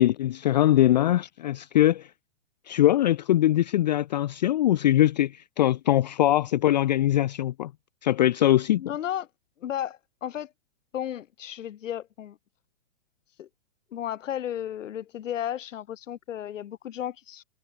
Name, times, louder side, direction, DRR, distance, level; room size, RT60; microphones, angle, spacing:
voice 1, 0.0-2.1 2.7-7.7 8.0-8.8, left 13 dB, 35° left, 0.5 m, -22 dB
voice 2, 8.8-9.3 9.6-10.5 10.9-12.4 13.4-13.5 13.9-17.4, left 10 dB, 90° left, 1.2 m, -34 dB
hypercardioid pair, 165°, 37 cm